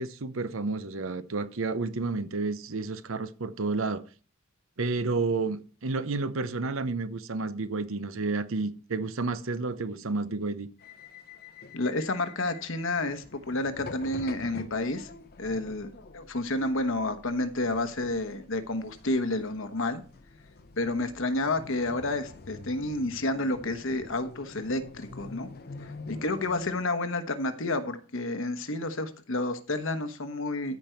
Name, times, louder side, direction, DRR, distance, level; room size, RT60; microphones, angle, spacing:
voice 1, 0.0-4.0 4.8-10.7, right 3 dB, 65° right, 0.8 m, -31 dB
sound 1, 10.8-26.8, left 3 dB, 45° left, 0.8 m, -46 dB
voice 2, 11.7-15.1 15.4-20.0 20.8-25.5 25.8-30.8, left 2 dB, 60° left, 1.2 m, -30 dB
14.0 x 5.2 x 4.5 m
head